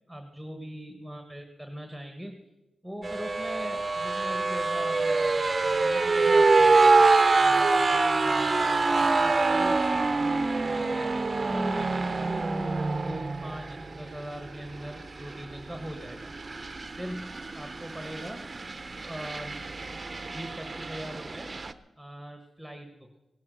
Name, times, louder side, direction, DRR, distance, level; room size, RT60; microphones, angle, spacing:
voice 1, 0.1-2.4 2.8-7.0 7.4-12.5 12.9-16.3 16.9-18.5 18.9-19.6 20.3-21.5 22.0-23.2, equal, ahead, 5 dB, 1.3 m, -41 dB
sound 1, 3.0-21.7, right 3 dB, 30° right, 0.7 m, -25 dB
17.0 x 12.0 x 6.3 m, 1.0 s
wide cardioid pair, 105°, 0 cm